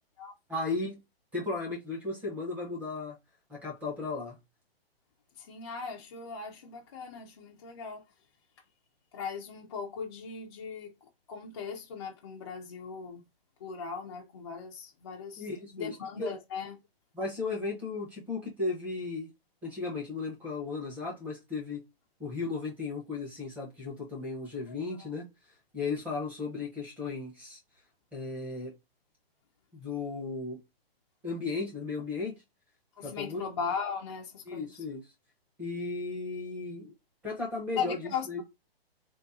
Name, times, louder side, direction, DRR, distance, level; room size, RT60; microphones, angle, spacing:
voice 1, 0.5-1.0 1.3-3.2 3.5-4.4 15.4-16.3 17.1-19.3 19.6-21.8 22.2-25.3 25.7-27.6 28.1-28.7 29.7-30.6 31.2-32.3 33.0-33.4 34.5-35.0 35.6-36.9 37.2-38.4, left 3 dB, 5° right, 0.7 m, -35 dB
voice 2, 5.4-8.0 9.1-10.9 11.3-13.2 13.6-15.5 15.7-16.8 24.7-25.1 33.0-34.8 37.8-38.4, left 6 dB, 30° left, 0.3 m, -38 dB
3.5 x 2.2 x 2.6 m
hypercardioid pair, 150°, 30 cm